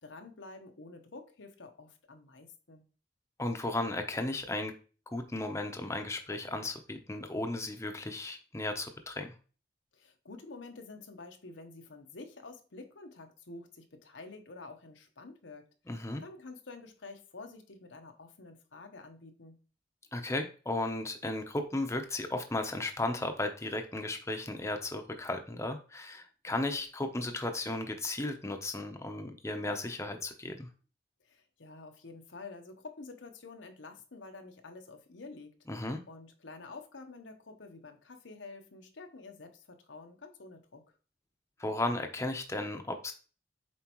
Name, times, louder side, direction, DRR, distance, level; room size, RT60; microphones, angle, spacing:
voice 1, 0.0-2.8 9.9-19.6 31.2-35.5 36.1-40.8, left 3 dB, 90° left, 5 dB, 1.0 m, -49 dB
voice 2, 3.4-4.7 5.1-9.3 15.9-16.2 20.1-30.7 35.7-36.0 41.6-43.1, left 2 dB, 15° left, 5 dB, 0.7 m, -35 dB
7.4 x 4.4 x 3.0 m, 0.36 s
head